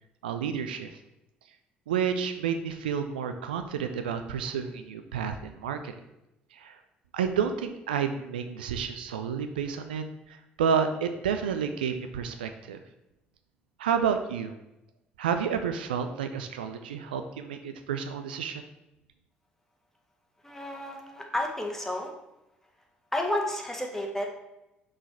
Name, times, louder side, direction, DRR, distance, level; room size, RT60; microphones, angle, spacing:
voice 1, 0.2-1.0 1.9-5.9 6.5-6.8 7.1-12.8 13.8-14.5 15.2-18.7, right 7 dB, 75° right, 8 dB, 0.4 m, -30 dB
voice 2, 20.4-22.1 23.1-24.3, left 1 dB, 5° left, 1 dB, 1.6 m, -31 dB
6.2 x 5.0 x 4.5 m, 0.91 s
figure-of-eight pair, 50°, 5 cm